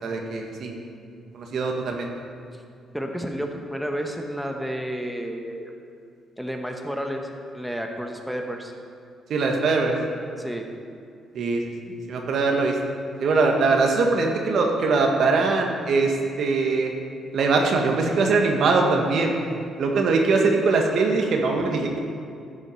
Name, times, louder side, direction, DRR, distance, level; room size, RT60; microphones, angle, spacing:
voice 1, 0.0-0.8 1.3-2.1 9.3-10.0 11.3-11.7 12.1-12.8 13.2-16.9 17.3-19.3 19.8-22.0, right 3 dB, 65° right, 2 dB, 1.5 m, -22 dB
voice 2, 2.9-5.7 6.4-7.3 7.5-8.7 10.4-10.6, equal, 5° right, 3 dB, 1.0 m, -31 dB
12.0 x 6.4 x 5.6 m, 2.4 s
cardioid pair, 90°, 0 cm